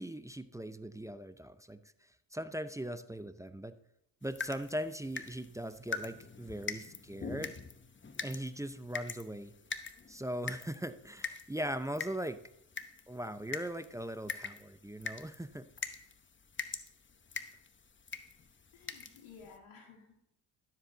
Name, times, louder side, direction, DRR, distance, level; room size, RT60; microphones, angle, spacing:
voice 1, 0.0-3.8 4.2-7.5 8.2-9.5 10.1-12.4 13.1-15.7, right 1 dB, 5° right, 12 dB, 0.5 m, -40 dB
sound 1, 4.2-19.6, left 5 dB, 25° left, 0.9 m, -44 dB
voice 2, 18.7-20.2, left 5 dB, 75° left, -5 dB, 2.3 m, -55 dB
12.0 x 7.6 x 3.8 m, 0.78 s
supercardioid pair, 55°, 48 cm